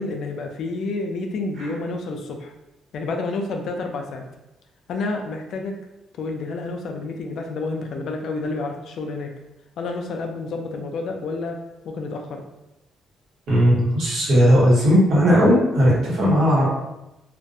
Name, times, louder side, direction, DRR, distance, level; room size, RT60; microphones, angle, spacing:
voice 1, 0.0-2.5 2.9-4.3 4.9-5.8 6.2-9.3 9.8-11.6 11.8-12.4, left 3 dB, 70° left, 3 dB, 0.4 m, -29 dB
voice 2, 13.5-16.7, equal, 70° right, -7 dB, 1.2 m, -17 dB
2.4 x 2.1 x 2.6 m, 0.92 s
cardioid pair, 90°, 0 cm